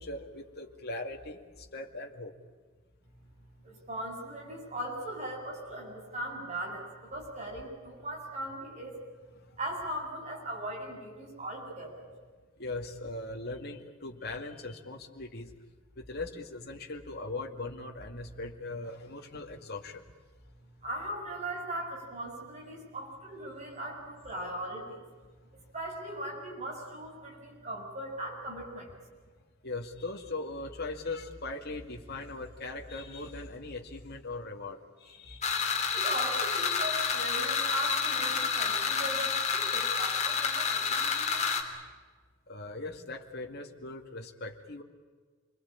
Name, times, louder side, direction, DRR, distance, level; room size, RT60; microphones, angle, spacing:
voice 1, 0.0-1.4 1.7-2.3 12.6-15.5 16.0-20.0 29.6-35.5 42.5-44.8, left 2 dB, 50° left, 2 dB, 2.2 m, -40 dB
voice 2, 3.6-9.0 9.6-12.1 20.8-25.0 25.7-28.9 35.9-41.5, right 1 dB, 35° right, 0 dB, 7.6 m, -39 dB
sound 1, 35.4-41.6, left 5 dB, 35° left, 3.4 m, -29 dB
27.5 x 22.5 x 8.7 m, 1.5 s
head